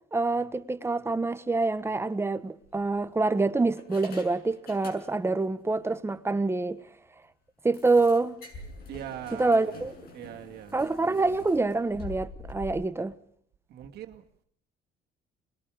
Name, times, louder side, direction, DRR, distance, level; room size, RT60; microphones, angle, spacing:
voice 1, 0.1-6.8 7.6-8.4 9.3-9.9 10.7-13.1, right 3 dB, 15° right, 1.2 m, -26 dB
sound 1, 1.7-1.9 2.6-3.3 3.8-5.4 5.7-5.9 6.3-6.4 6.7-6.8 7.7-12.7, left 2 dB, 65° left, 6.9 m, -46 dB
voice 2, 8.9-9.6 10.1-10.7 13.7-14.2, right 11 dB, 70° right, 2.3 m, -40 dB
27.0 x 21.0 x 5.0 m
cardioid pair, 110°, 17 cm